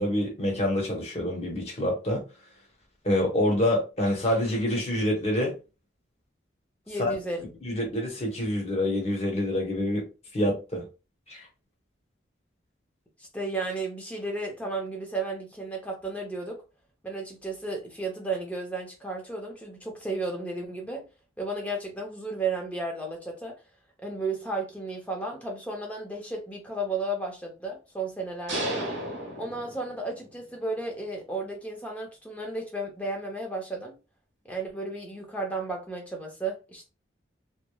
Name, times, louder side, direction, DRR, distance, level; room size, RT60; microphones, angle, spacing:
voice 1, 0.0-2.2 3.0-5.5 7.0-7.1 7.6-10.1 10.3-10.8 11.3-11.5, left 1 dB, 35° left, 0.9 m, -26 dB
voice 2, 6.9-7.5 13.2-16.6 17.0-21.1 21.4-23.6 24.0-28.8 29.4-34.0 34.4-36.9, right 2 dB, 10° left, 0.6 m, -33 dB
sound 1, 28.5-30.3, right 1 dB, 70° right, 1.2 m, -33 dB
3.0 x 2.0 x 2.2 m
head